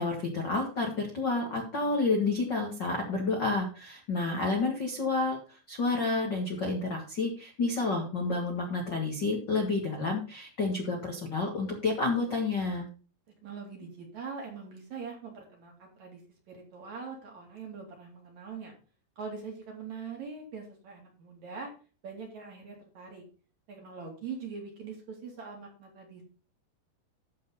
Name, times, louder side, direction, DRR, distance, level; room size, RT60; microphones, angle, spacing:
voice 1, 0.0-12.9, left 3 dB, 60° left, 1 dB, 1.1 m, -30 dB
voice 2, 13.4-16.2 16.5-18.7 19.2-21.7 22.0-23.2 23.7-26.2, right 5 dB, 45° right, 0 dB, 3.5 m, -42 dB
13.5 x 4.5 x 5.5 m, 0.37 s
omnidirectional pair, 5.0 m